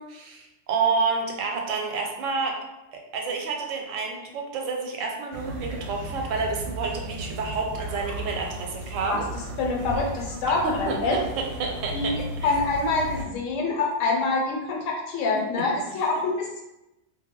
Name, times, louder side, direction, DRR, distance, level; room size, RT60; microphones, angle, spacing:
voice 1, 0.0-2.6 2.9-9.2 10.6-12.1 12.4-12.5 15.5-15.6, right 4 dB, 90° right, 1 dB, 1.0 m, -29 dB
sound 1, 5.3-13.2, right 1 dB, 65° right, 0.8 m, -35 dB
voice 2, 9.6-11.2 11.9-16.6, left 3 dB, 85° left, -1 dB, 1.0 m, -26 dB
2.2 x 2.0 x 3.5 m, 0.91 s
omnidirectional pair, 1.3 m